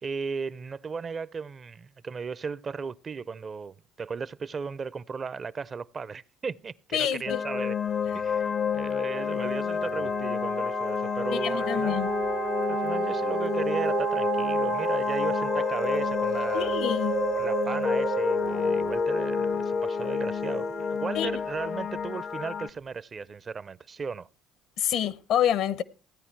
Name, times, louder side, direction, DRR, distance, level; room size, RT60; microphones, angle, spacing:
voice 1, 0.0-7.8 8.1-12.0 12.7-16.7 17.3-24.3, right 5 dB, 40° right, 0.5 m, -36 dB
voice 2, 6.9-7.4 11.3-12.1 16.5-17.1 21.1-21.4 24.8-25.8, left 10 dB, 70° left, 0.8 m, -27 dB
sound 1, 7.3-22.7, left 6 dB, 45° left, 0.5 m, -29 dB
sound 2, 8.0-8.5 8.9-21.4 21.9-22.0, right 10 dB, 75° right, 0.7 m, -33 dB
16.0 x 9.7 x 4.5 m
supercardioid pair, 70°, 0 cm